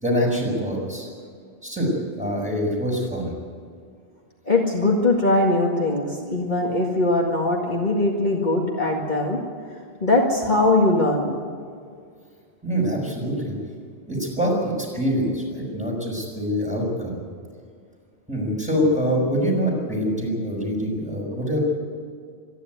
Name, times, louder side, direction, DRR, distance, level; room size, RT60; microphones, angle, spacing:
voice 1, 0.0-1.1 1.6-1.9 2.2-3.3 12.6-13.6 14.1-17.2 18.3-21.6, equal, 5° right, -3 dB, 5.9 m, -24 dB
voice 2, 4.5-9.4 10.0-11.3, left 2 dB, 45° left, -1 dB, 2.1 m, -21 dB
26.0 x 11.0 x 9.5 m, 2.1 s
omnidirectional pair, 1.1 m